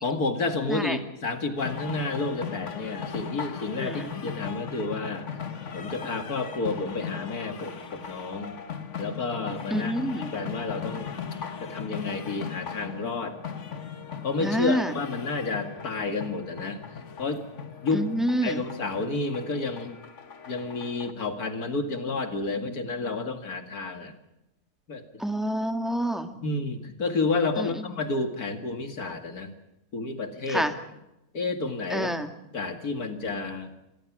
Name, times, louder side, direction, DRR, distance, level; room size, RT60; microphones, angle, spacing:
voice 1, 0.0-5.3 5.7-8.6 9.0-11.2 11.6-13.4 14.2-16.8 17.2-17.5 17.8-18.1 18.4-20.0 20.5-24.1 24.9-25.2 26.4-29.5 29.9-30.7 31.3-32.1 32.5-33.7, left 3 dB, 80° left, 7 dB, 2.7 m, -30 dB
sound 1, 1.6-21.1, left 7 dB, 55° left, 1.7 m, -38 dB
voice 2, 3.8-4.1 9.7-10.4 14.4-15.0 17.9-18.6 25.2-26.4 27.6-27.7 30.5-30.7 31.9-32.3, equal, ahead, 6 dB, 2.0 m, -27 dB
27.0 x 21.5 x 6.2 m, 0.94 s
omnidirectional pair, 1.6 m